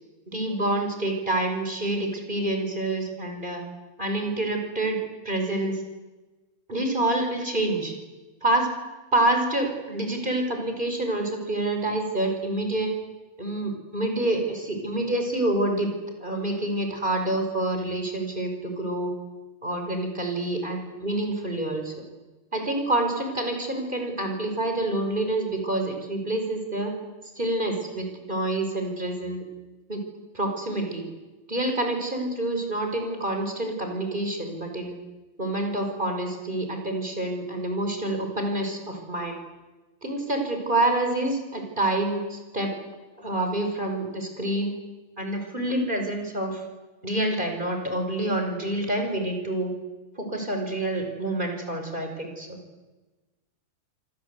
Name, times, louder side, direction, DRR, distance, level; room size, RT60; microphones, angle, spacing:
voice 1, 0.3-3.6 4.0-5.0 5.2-5.8 6.7-7.9 8.4-8.7 9.1-12.9 13.4-15.9 16.2-19.1 19.6-21.9 22.5-26.9 27.4-29.4 29.9-30.0 30.3-31.0 31.5-35.0 35.4-39.4 40.0-42.7 43.2-44.7 45.2-46.6 47.0-49.7 50.2-52.5, right 1 dB, 10° right, 3 dB, 4.8 m, -27 dB
27.0 x 25.5 x 8.2 m, 1.2 s
omnidirectional pair, 4.9 m